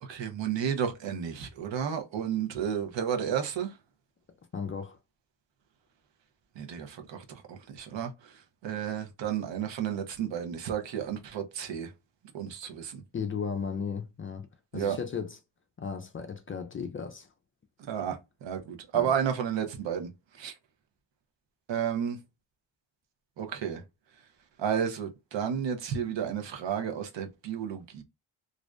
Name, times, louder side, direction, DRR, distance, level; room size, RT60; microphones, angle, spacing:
voice 1, 0.0-3.8 6.6-8.3 8.6-11.9 12.3-13.0 14.7-15.0 17.9-20.1 20.4-20.5 21.7-22.2 23.4-23.8 24.6-28.0, right 8 dB, 70° right, 0.7 m, -32 dB
voice 2, 4.5-5.0 13.1-14.5 14.7-15.4 15.8-17.3 18.9-19.1, left 6 dB, 30° left, 0.4 m, -35 dB
2.5 x 2.1 x 2.3 m
cardioid pair, 60°, 46 cm